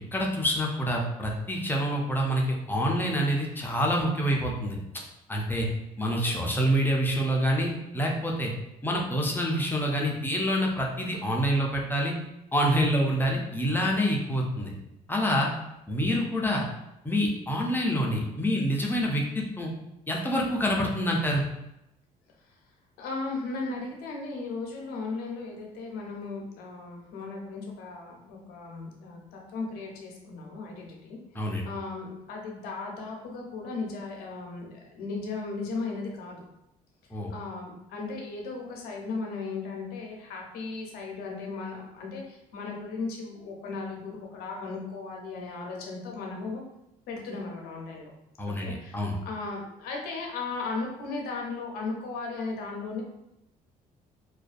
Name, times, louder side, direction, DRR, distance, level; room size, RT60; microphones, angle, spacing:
voice 1, 0.0-4.8 5.3-5.7 6.0-8.5 8.8-12.1 12.5-14.7 15.1-15.5 15.9-16.6 17.0-19.7 20.1-21.4 31.3-31.7 37.1-37.3 48.4-49.2, equal, 15° left, -1 dB, 0.5 m, -27 dB
voice 2, 23.0-31.2 31.7-34.7 34.9-36.4 37.3-46.6 47.1-48.1 48.5-53.0, left 3 dB, 80° left, 0 dB, 0.6 m, -36 dB
2.4 x 2.2 x 2.4 m, 0.86 s
cardioid pair, 95°, 15 cm